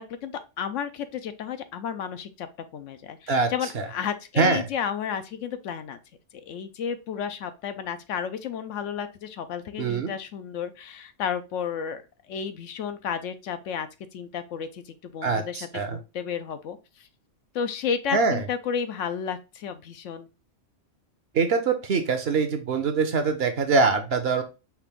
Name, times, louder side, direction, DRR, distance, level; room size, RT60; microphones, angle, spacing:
voice 1, 0.0-2.5 2.7-6.0 6.5-12.0 12.3-16.8 17.5-20.3, left 7 dB, 75° left, 10 dB, 1.0 m, -32 dB
voice 2, 9.8-10.1 15.2-16.0 18.1-18.4 21.3-24.4, right 4 dB, 60° right, 7 dB, 0.9 m, -23 dB
5.9 x 2.5 x 3.5 m, 0.29 s
omnidirectional pair, 1.3 m